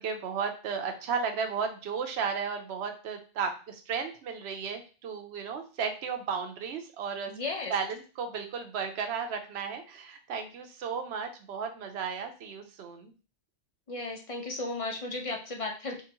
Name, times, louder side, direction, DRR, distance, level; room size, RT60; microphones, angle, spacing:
voice 1, 0.0-7.3 7.7-13.1, right 6 dB, 70° right, 6 dB, 0.9 m, -34 dB
voice 2, 7.3-7.7 13.9-16.0, left 2 dB, 45° left, 1 dB, 0.4 m, -35 dB
3.7 x 2.5 x 2.9 m, 0.35 s
omnidirectional pair, 1.2 m